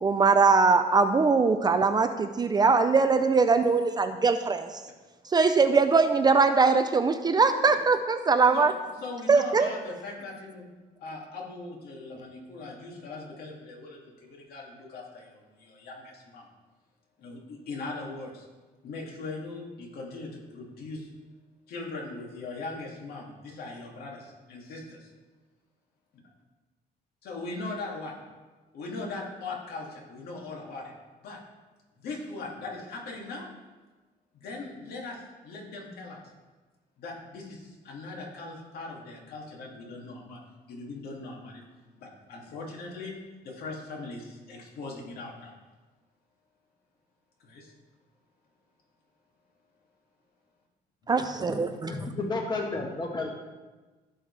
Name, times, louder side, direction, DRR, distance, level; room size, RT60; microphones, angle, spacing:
voice 1, 0.0-4.8 5.2-8.7 9.3-9.7 51.1-51.9, right 4 dB, 25° right, 8 dB, 0.5 m, -22 dB
voice 2, 7.3-7.7 8.5-10.7 11.0-16.5 17.2-18.4 18.8-21.1 21.7-25.1 27.3-28.2 28.7-30.9 31.2-31.4 32.0-33.5 34.3-36.3 37.0-40.4 40.7-41.6 42.0-43.2 43.4-45.5 47.4-47.7, left 3 dB, 65° left, -1 dB, 2.5 m, -40 dB
voice 3, 51.5-53.3, left 3 dB, 25° left, 1 dB, 1.3 m, -32 dB
15.5 x 5.5 x 3.3 m, 1.3 s
cardioid pair, 130°, 17 cm